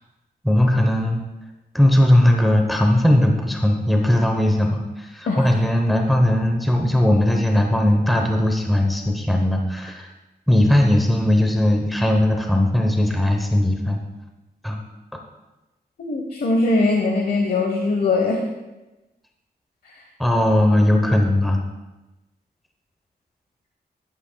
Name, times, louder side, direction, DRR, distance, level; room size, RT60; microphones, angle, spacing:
voice 1, 0.4-1.2 1.7-10.1 10.5-14.0 14.6-14.8 20.2-21.6, left 1 dB, ahead, 2 dB, 0.8 m, -18 dB
voice 2, 16.0-18.5, left 3 dB, 65° left, 1 dB, 1.0 m, -21 dB
14.0 x 10.0 x 2.3 m, 1.1 s
wide cardioid pair, 180°, 17 cm